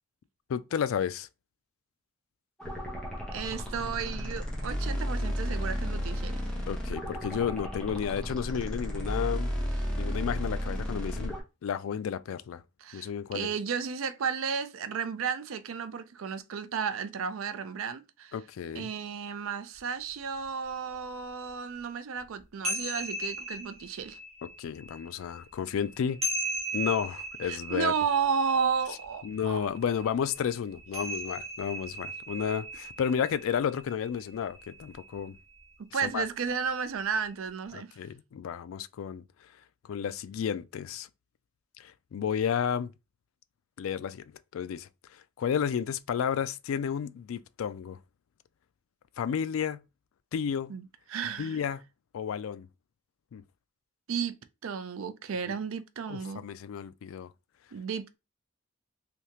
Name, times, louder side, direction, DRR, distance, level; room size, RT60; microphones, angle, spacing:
voice 1, 0.5-1.3 6.7-9.5 10.0-11.3 11.6-12.6 12.9-13.5 18.3-18.9 24.6-26.2 26.7-27.9 29.2-35.3 36.0-36.2 37.7-39.2 39.9-41.1 41.8-42.9 43.8-44.2 44.5-48.0 49.2-49.8 50.3-50.7 51.4-51.8 52.1-52.7 53.3-53.4 56.1-57.3, left 7 dB, 80° left, 0.3 m, -32 dB
sound 1, 2.6-11.4, equal, 5° left, 0.9 m, -33 dB
voice 2, 3.3-6.4 12.8-18.3 18.8-24.2 27.5-29.7 35.8-37.9 50.7-51.6 54.1-54.4 54.6-56.4 57.7-58.2, right 6 dB, 85° right, 0.4 m, -33 dB
sound 2, 19.8-19.9 20.4-20.5 20.9-21.0 22.2-35.7, right 1 dB, 30° right, 1.0 m, -38 dB
3.4 x 2.7 x 2.9 m
head